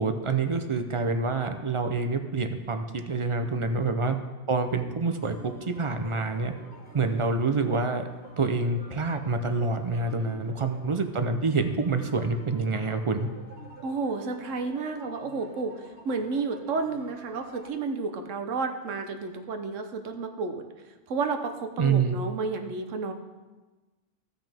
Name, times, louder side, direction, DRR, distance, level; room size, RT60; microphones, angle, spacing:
voice 1, 0.0-4.2 4.5-6.5 6.9-8.1 8.4-13.3 21.8-22.1, right 4 dB, 40° right, 7 dB, 0.5 m, -27 dB
sound 1, 5.0-17.7, right 1 dB, 10° right, 1.6 m, -49 dB
voice 2, 10.1-10.7 13.8-20.6 21.1-23.1, right 4 dB, 85° right, 6 dB, 1.2 m, -32 dB
15.5 x 5.8 x 3.5 m, 1.2 s
omnidirectional pair, 1.3 m